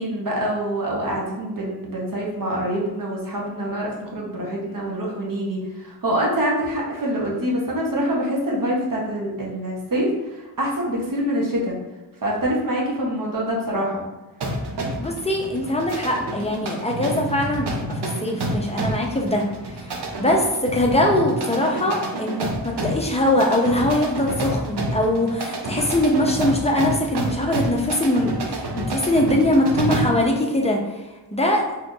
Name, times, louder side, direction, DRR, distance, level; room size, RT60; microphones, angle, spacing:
voice 1, 0.0-11.8 12.2-14.1, equal, 50° right, -3 dB, 1.0 m, -25 dB
sound 1, 14.4-30.3, right 1 dB, 70° right, 0.7 m, -29 dB
voice 2, 15.0-31.8, left 1 dB, 15° left, 0 dB, 0.6 m, -22 dB
2.9 x 2.4 x 3.7 m, 1.1 s
wide cardioid pair, 90°, 42 cm